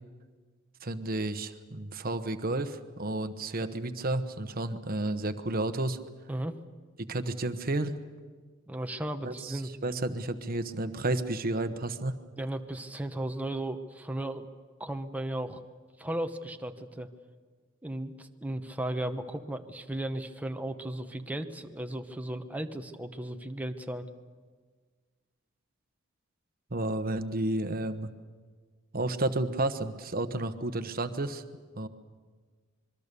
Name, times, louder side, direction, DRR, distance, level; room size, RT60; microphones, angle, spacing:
voice 1, 0.8-6.0 7.1-8.0 9.2-12.2 26.7-28.1 28.9-31.4 31.7-31.9, right 2 dB, 45° right, 10 dB, 1.2 m, -31 dB
voice 2, 8.7-9.7 12.4-14.5 14.8-15.6 16.0-17.1 17.8-24.1, right 1 dB, 10° right, 5 dB, 1.1 m, -35 dB
26.0 x 22.5 x 6.9 m, 1.5 s
head